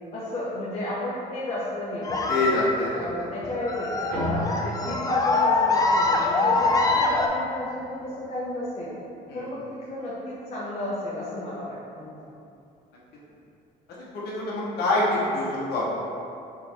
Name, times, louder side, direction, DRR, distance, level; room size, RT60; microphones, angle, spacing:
voice 1, 0.1-2.4 2.9-8.9 9.3-12.2, left 1 dB, 35° left, -8 dB, 0.8 m, -33 dB
sound 1, 2.0-7.3, left 3 dB, 20° left, 0.4 m, -24 dB
voice 2, 2.3-3.1 9.3-9.5 14.1-15.8, left 2 dB, 75° left, -6 dB, 0.9 m, -25 dB
sound 2, 4.1-8.9, equal, 80° right, 1.4 m, -36 dB
4.6 x 3.0 x 3.4 m, 2.6 s
cardioid pair, 110°, 17 cm